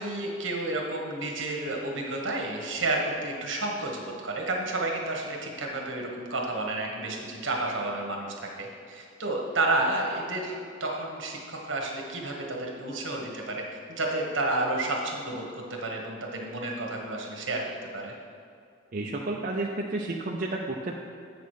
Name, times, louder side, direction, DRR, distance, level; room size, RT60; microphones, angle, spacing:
voice 1, 0.0-13.6 13.9-17.6 17.9-18.1, right 2 dB, 70° right, 0 dB, 1.4 m, -31 dB
voice 2, 18.9-21.0, right 2 dB, 45° right, -1 dB, 0.5 m, -31 dB
8.2 x 6.1 x 4.8 m, 2.4 s
head